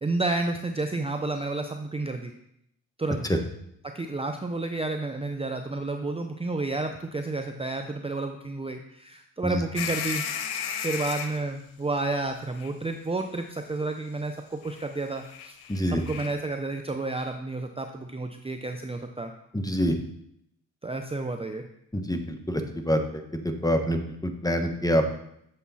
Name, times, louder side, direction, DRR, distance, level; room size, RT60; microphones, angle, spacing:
voice 1, 0.0-2.3 3.0-3.2 3.9-10.2 10.8-15.6 15.9-19.3 20.8-21.6, right 2 dB, 15° right, 5 dB, 0.7 m, -31 dB
sound 1, 9.7-11.4 12.6-12.7 14.6-14.9 15.2-16.3, left 7 dB, 85° left, 0.9 m, -34 dB
voice 2, 15.7-16.0 19.5-20.0 21.9-25.1, equal, 10° left, 5 dB, 1.2 m, -26 dB
8.5 x 6.8 x 4.1 m, 0.75 s
cardioid pair, 75°, 37 cm